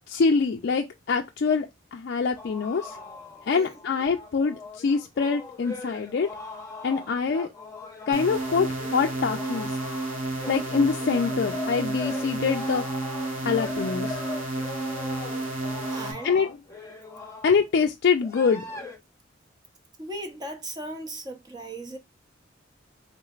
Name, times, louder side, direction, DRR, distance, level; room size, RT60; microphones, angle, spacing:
voice 1, 0.1-3.0 3.4-6.3 6.8-7.5 8.1-9.7 10.5-12.8 13.4-14.2 16.2-16.6 17.4-18.7, left 5 dB, 55° left, 0.4 m, -25 dB
sound 1, 2.4-17.6 18.2-19.0, left 3 dB, 15° left, 0.8 m, -40 dB
voice 2, 3.5-3.8 15.9-16.4 20.0-22.0, right 1 dB, 20° right, 0.7 m, -37 dB
sound 2, 8.1-16.1, right 2 dB, 85° right, 1.2 m, -31 dB
3.6 x 3.1 x 2.3 m
head